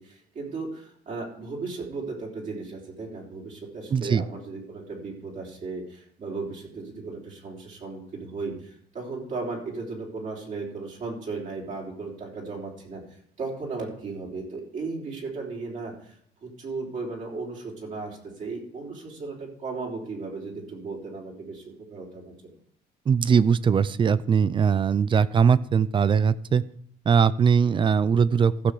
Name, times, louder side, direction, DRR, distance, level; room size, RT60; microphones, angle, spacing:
voice 1, 0.0-22.3, right 3 dB, 50° right, -2 dB, 3.5 m, -36 dB
voice 2, 3.9-4.2 23.1-26.6 27.1-28.7, right 6 dB, 30° right, 18 dB, 0.5 m, -21 dB
15.0 x 6.0 x 4.9 m, 0.65 s
cardioid pair, 110°, 17 cm